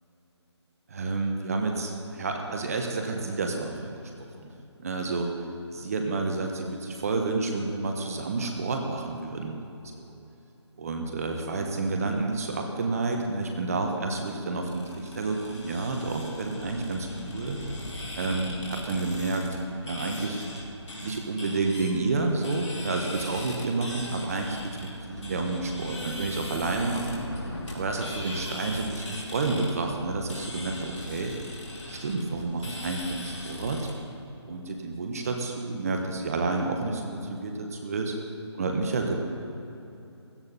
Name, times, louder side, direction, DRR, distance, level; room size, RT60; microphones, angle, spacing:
voice 1, 0.9-4.0 4.4-4.5 4.8-5.3 5.7-9.6 9.9-10.1 10.8-17.6 18.2-19.5 19.8-20.4 21.0-27.2 27.7-31.3 31.9-33.9 34.5-38.1 38.6-39.2, right 3 dB, 30° right, 3 dB, 1.3 m, -30 dB
sound 1, 14.6-33.9, left 1 dB, 85° left, 3.5 m, -39 dB
16.5 x 13.0 x 4.2 m, 2.9 s
hypercardioid pair, 170°, 15 cm